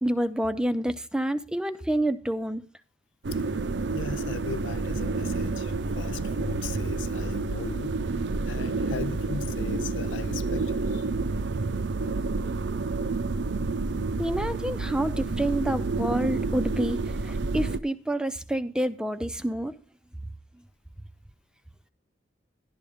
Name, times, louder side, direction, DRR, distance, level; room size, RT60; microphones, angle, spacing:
voice 1, 0.0-2.6 14.2-19.8, right 1 dB, 5° right, 0.5 m, -28 dB
sound 1, 3.2-17.8, right 3 dB, 65° right, 0.5 m, -29 dB
voice 2, 3.9-8.0 8.5-11.1, left 4 dB, 80° left, 0.6 m, -37 dB
12.0 x 12.0 x 3.5 m
head